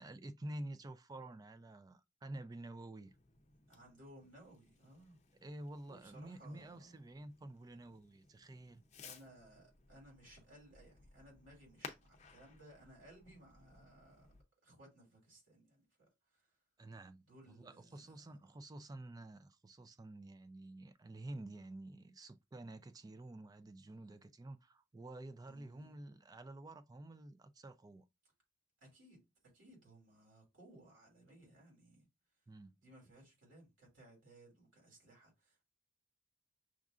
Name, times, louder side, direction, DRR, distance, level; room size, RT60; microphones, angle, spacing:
voice 1, 0.0-3.1 5.4-8.8 16.8-28.0 32.5-32.8, right 1 dB, 20° right, 0.3 m, -50 dB
Fireworks, 3.0-14.4, left 5 dB, 35° left, 0.6 m, -59 dB
voice 2, 3.6-5.2 5.9-7.0 9.0-14.3 14.6-16.5 17.3-18.4 25.4-26.0 28.8-32.1 32.8-35.6, right 1 dB, 85° right, 2.5 m, -61 dB
6.2 x 2.4 x 2.4 m
head